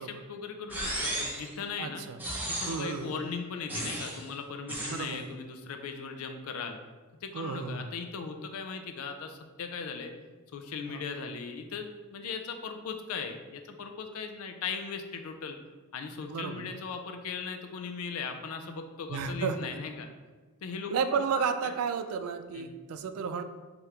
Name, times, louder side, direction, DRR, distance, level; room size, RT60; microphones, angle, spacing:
voice 1, 0.0-2.0 2.5-6.8 7.2-10.1 10.5-15.6 15.9-20.1 20.6-20.9 21.6-21.7 22.5-22.8, left 5 dB, 70° left, 6 dB, 0.4 m, -38 dB
sound 1, 0.7-1.5 2.2-2.9 3.7-4.2 4.7-5.1, right 1 dB, 10° right, 0.6 m, -34 dB
voice 2, 1.8-2.2 2.6-3.1 4.9-5.3 7.3-7.9 10.9-11.0 16.3-16.7 19.1-19.6 20.9-23.4, right 5 dB, 75° right, 11 dB, 0.3 m, -32 dB
3.6 x 2.9 x 3.2 m, 1.3 s
head